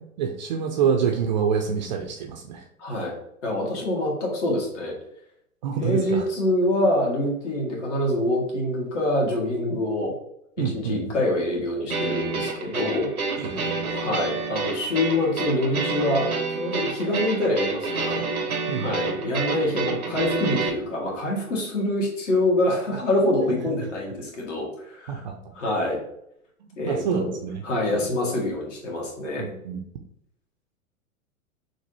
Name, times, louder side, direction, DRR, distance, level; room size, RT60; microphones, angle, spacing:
voice 1, 0.2-2.7 5.6-6.2 9.7-9.8 10.6-11.2 13.4-14.0 18.7-18.9 25.1-25.3 26.6-27.6 27.9-28.1 29.4-29.8, right 7 dB, 35° right, 3 dB, 0.5 m, -27 dB
voice 2, 2.8-3.1 3.4-4.9 5.8-10.1 10.7-13.1 13.9-18.2 18.8-25.2 25.5-26.0 26.8-27.3 27.6-29.4, left 1 dB, 55° left, -1 dB, 1.7 m, -25 dB
sound 1, 11.9-20.7, right 4 dB, 90° right, 0.8 m, -28 dB
5.9 x 2.6 x 2.9 m, 0.74 s
figure-of-eight pair, 100°, 42 cm